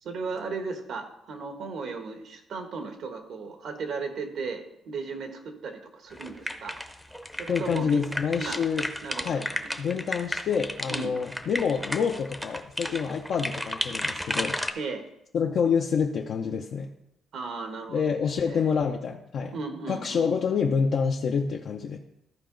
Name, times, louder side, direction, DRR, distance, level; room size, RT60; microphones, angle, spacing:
voice 1, 0.0-6.8 7.4-8.0 8.4-8.6 9.0-9.8 10.9-11.2 14.7-15.0 17.3-18.0 18.4-18.6 19.5-20.3, right 4 dB, 70° right, 5 dB, 1.4 m, -36 dB
sound 1, 6.1-14.7, equal, ahead, 0.7 m, -33 dB
voice 2, 7.5-8.9 9.2-9.5 9.8-14.6 15.3-16.9 17.9-19.5 19.9-22.0, left 6 dB, 65° left, 0 dB, 0.7 m, -27 dB
13.5 x 4.7 x 3.9 m, 0.81 s
cardioid pair, 90°, 0 cm